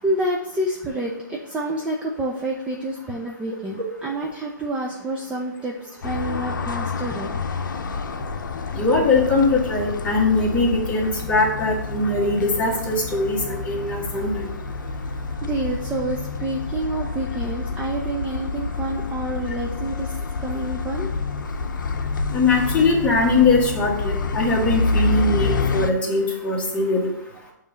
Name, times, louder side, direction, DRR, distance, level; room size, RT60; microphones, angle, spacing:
voice 1, 0.0-7.3 15.4-20.1 20.4-21.1, right 1 dB, 10° right, -1 dB, 0.5 m, -28 dB
sound 1, 6.0-25.9, left 4 dB, 75° left, 0.6 m, -28 dB
voice 2, 8.7-14.5 22.3-27.0, left 3 dB, 10° left, -3 dB, 1.5 m, -21 dB
7.0 x 3.1 x 5.0 m, 0.80 s
hypercardioid pair, 140°, 10 cm